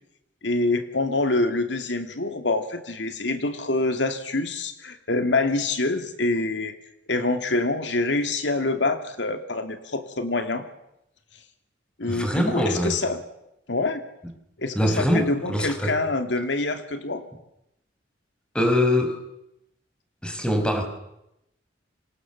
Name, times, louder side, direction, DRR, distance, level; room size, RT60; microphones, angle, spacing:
voice 1, 0.4-6.7 7.1-10.6 12.0-13.2 13.7-14.0 14.6-17.2, left 2 dB, 75° left, 7 dB, 2.5 m, -26 dB
voice 2, 12.1-13.0 14.7-16.0 18.5-19.2 20.2-20.8, left 1 dB, 5° left, 5 dB, 5.5 m, -23 dB
30.0 x 26.5 x 7.2 m, 0.85 s
head